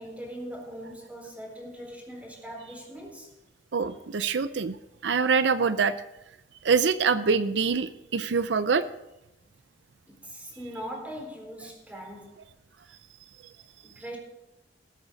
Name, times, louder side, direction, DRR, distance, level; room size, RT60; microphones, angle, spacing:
voice 1, 0.0-3.3 10.1-12.4 13.8-14.2, equal, 10° right, 0 dB, 3.8 m, -41 dB
voice 2, 3.7-4.8 5.0-5.9 6.6-8.9, right 5 dB, 80° right, 13 dB, 0.5 m, -24 dB
20.5 x 8.3 x 4.1 m, 0.90 s
head